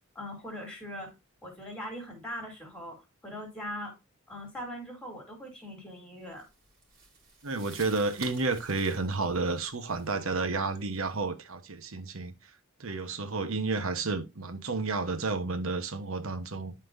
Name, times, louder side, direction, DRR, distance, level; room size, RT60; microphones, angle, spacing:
voice 1, 0.1-1.1 1.4-3.0 3.2-3.9 4.3-6.4, equal, 5° left, 3.3 m, -40 dB
sound 1, 6.3-11.2, right 3 dB, 45° right, 3.8 m, -51 dB
voice 2, 7.4-12.3 12.8-16.7, right 3 dB, 70° right, 1.1 m, -31 dB
11.5 x 4.5 x 2.6 m
head